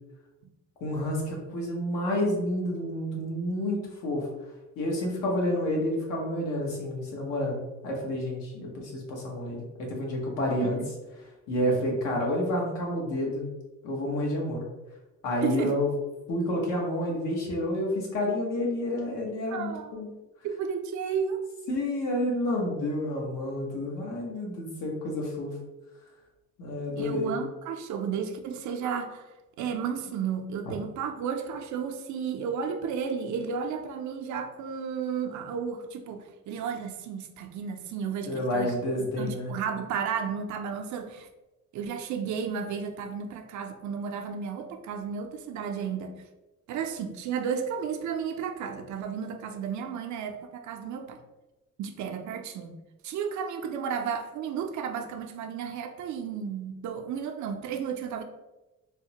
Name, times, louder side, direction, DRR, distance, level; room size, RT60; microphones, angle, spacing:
voice 1, 0.8-4.3 4.8-10.8 11.5-13.5 13.8-14.7 15.2-15.9 16.3-20.1 21.7-25.5 26.6-27.3 38.3-39.5, left 1 dB, 85° left, -1 dB, 1.0 m, -29 dB
voice 2, 15.4-15.7 19.5-20.0 20.4-21.4 27.0-38.7 39.2-41.3 41.7-46.2 46.7-51.2 51.8-52.7 53.0-58.2, right 7 dB, 70° right, 6 dB, 0.5 m, -33 dB
3.3 x 2.1 x 2.8 m, 1.1 s
cardioid pair, 90°, 30 cm